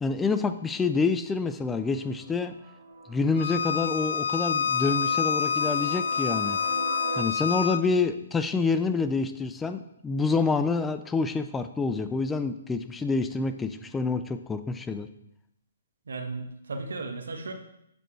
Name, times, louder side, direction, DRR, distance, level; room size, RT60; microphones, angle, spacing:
voice 1, 0.0-2.5 3.1-6.6 7.2-15.1, left 4 dB, 10° left, 9 dB, 0.4 m, -27 dB
sound 1, 1.7-7.2, right 4 dB, 50° right, 1.2 m, -40 dB
Bowed string instrument, 3.4-7.8, left 7 dB, 75° left, 0.5 m, -27 dB
voice 2, 16.1-17.5, right 3 dB, 85° right, 5 dB, 1.1 m, -35 dB
7.9 x 6.1 x 3.1 m, 0.80 s
hypercardioid pair, 145°, 0 cm